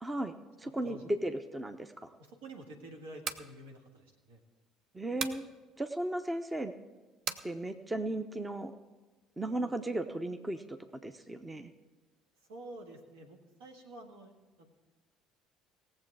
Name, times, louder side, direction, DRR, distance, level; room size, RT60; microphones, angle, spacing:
voice 1, 0.0-2.1 4.9-5.5 5.8-6.7 7.4-8.7 9.4-11.7, right 1 dB, 15° right, 8 dB, 0.7 m, -36 dB
voice 2, 0.6-1.0 2.2-4.4 12.5-14.3 14.6-14.7, right 1 dB, 70° right, 2 dB, 1.6 m, -49 dB
sound 1, 3.2-3.5 5.2-5.5 7.3-7.5, right 6 dB, 50° right, 0.7 m, -36 dB
18.5 x 7.6 x 4.8 m, 1.2 s
figure-of-eight pair, 55°, 0 cm